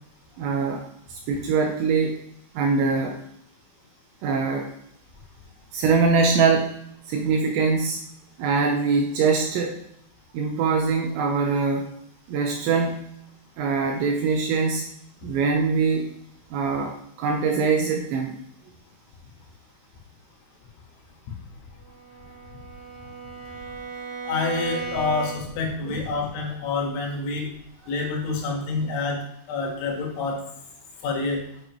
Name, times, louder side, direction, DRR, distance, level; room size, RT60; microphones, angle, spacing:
voice 1, 0.4-0.8 1.1-2.2 2.5-3.2 4.2-4.7 5.7-6.7 7.0-8.1 8.4-9.8 10.3-11.9 12.3-13.0 13.6-14.9 15.2-16.1 16.5-18.4 25.8-26.0 28.8-28.9, right 5 dB, 80° right, 2 dB, 2.7 m, -23 dB
Bowed string instrument, 21.9-25.7, right 5 dB, 40° right, 3.9 m, -36 dB
voice 2, 24.3-27.5 27.9-29.2 29.5-30.4 31.0-31.4, left 3 dB, 75° left, 0 dB, 3.8 m, -27 dB
9.2 x 6.4 x 3.0 m, 0.73 s
omnidirectional pair, 5.8 m